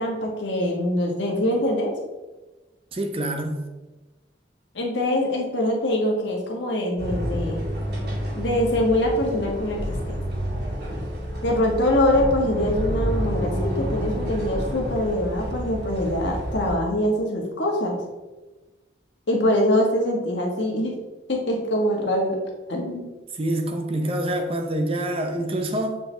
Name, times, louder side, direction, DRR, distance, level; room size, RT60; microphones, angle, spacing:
voice 1, 0.0-1.9 4.7-7.6 8.3-10.2 11.4-18.0 19.3-20.9 21.3-22.4 22.7-23.1, left 1 dB, 75° left, 1.4 m, -23 dB
voice 2, 2.9-3.6 23.3-26.0, right 1 dB, 30° right, 0.7 m, -26 dB
sound 1, 7.0-16.8, equal, 65° right, 2.2 m, -29 dB
7.6 x 4.7 x 3.3 m
head